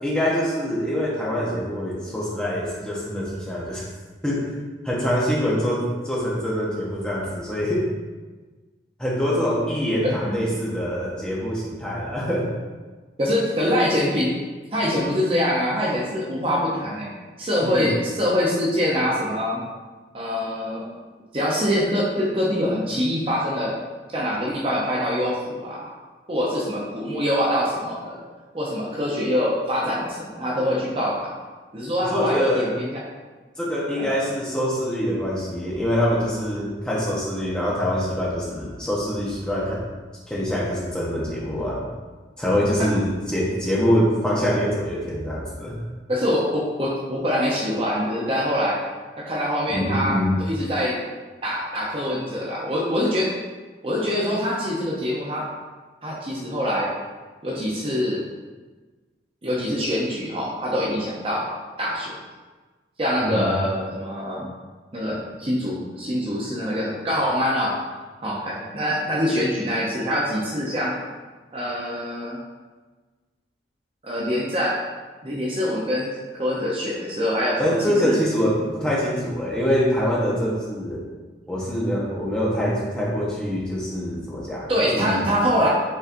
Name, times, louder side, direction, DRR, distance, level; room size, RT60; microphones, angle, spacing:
voice 1, 0.0-3.8 4.2-4.5 4.8-7.8 9.0-12.5 17.6-17.9 32.0-32.7 33.6-39.8 40.3-41.8 42.4-45.7 49.7-50.4 63.2-63.6 77.6-81.0 81.5-85.4, equal, 5° left, -6 dB, 0.9 m, -24 dB
voice 2, 10.0-10.5 13.2-14.3 14.7-17.1 17.4-19.6 20.1-20.9 21.3-23.7 24.1-25.9 26.3-28.2 28.5-31.4 31.7-33.0 34.0-34.1 46.1-48.8 49.2-51.0 51.4-53.3 53.8-55.4 56.0-56.9 57.4-58.2 59.4-61.5 61.8-62.1 63.0-64.5 64.9-67.7 68.2-70.9 71.5-72.4 74.0-74.7 75.2-78.2 84.7-85.7, equal, 30° right, -5 dB, 0.6 m, -24 dB
5.4 x 3.7 x 2.6 m, 1.3 s
head